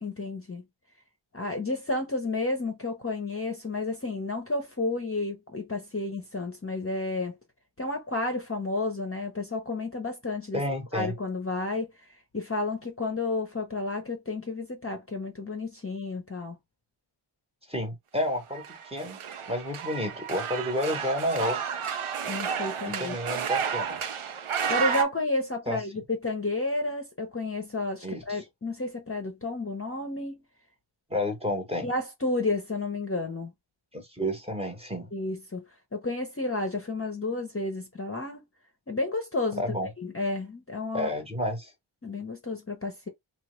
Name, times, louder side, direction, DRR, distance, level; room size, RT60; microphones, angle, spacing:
voice 1, 0.0-0.6 1.3-7.3 7.8-10.6 10.9-11.9 12.3-16.6 22.2-23.1 24.7-30.4 31.8-33.5 35.1-35.6 35.9-38.4 38.9-39.6 40.0-41.1 42.0-43.1, left 2 dB, 30° left, 0.6 m, -31 dB
voice 2, 10.5-11.1 17.7-19.2 19.5-21.6 22.9-24.0 25.7-26.0 28.0-28.4 31.1-31.9 33.9-35.1 39.6-39.9 40.9-41.7, left 1 dB, 10° right, 0.9 m, -30 dB
sound 1, 18.5-25.0, right 7 dB, 80° right, 0.6 m, -31 dB
2.9 x 2.1 x 3.0 m
wide cardioid pair, 55°, 49 cm